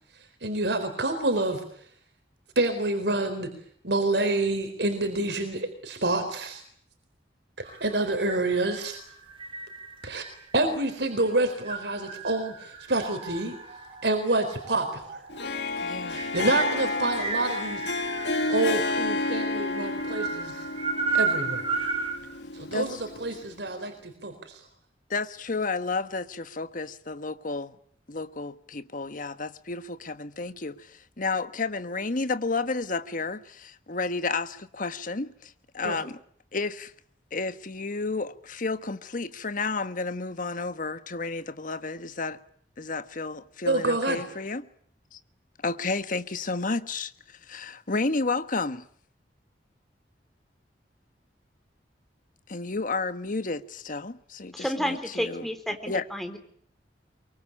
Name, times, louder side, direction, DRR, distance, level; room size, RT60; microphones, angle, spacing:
voice 1, 0.4-1.6 2.6-3.5 3.8-6.6 7.6-9.0 10.0-10.3 10.5-13.5 14.0-15.2 16.0-17.9 18.5-20.6 21.1-21.6 22.5-24.6 35.8-36.0 43.7-44.2, right 2 dB, 70° right, 4.2 m, -27 dB
sound 1, 7.6-22.2, right 4 dB, 30° right, 5.9 m, -35 dB
Harp, 15.3-23.6, left 2 dB, 75° left, 2.0 m, -31 dB
voice 2, 15.8-16.2 22.7-23.0 25.1-27.8 28.1-36.2 36.5-36.9 37.3-42.4 42.8-44.7 45.1-45.2 45.6-48.8 52.5-55.5 55.9-56.0, left 3 dB, 50° left, 1.3 m, -31 dB
voice 3, 54.5-56.4, equal, ahead, 3.5 m, -31 dB
24.0 x 23.5 x 8.7 m
head